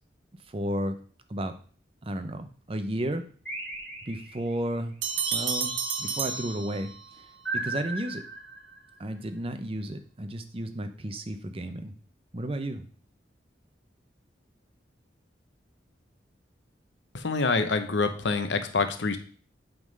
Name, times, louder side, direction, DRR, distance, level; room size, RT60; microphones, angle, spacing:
voice 1, 0.5-1.0 1.3-1.5 2.0-3.3 4.0-4.9 5.3-7.3 7.5-8.2 9.0-11.9 12.3-12.8, right 1 dB, 30° right, 8 dB, 0.6 m, -33 dB
sound 1, 3.5-4.6 5.3-6.4 7.5-8.9, right 1 dB, 5° left, 1.7 m, -36 dB
sound 2, 5.0-7.3, right 7 dB, 85° right, 0.8 m, -31 dB
voice 2, 17.1-19.2, left 4 dB, 80° left, 9 dB, 0.9 m, -26 dB
7.9 x 3.8 x 5.3 m, 0.43 s
head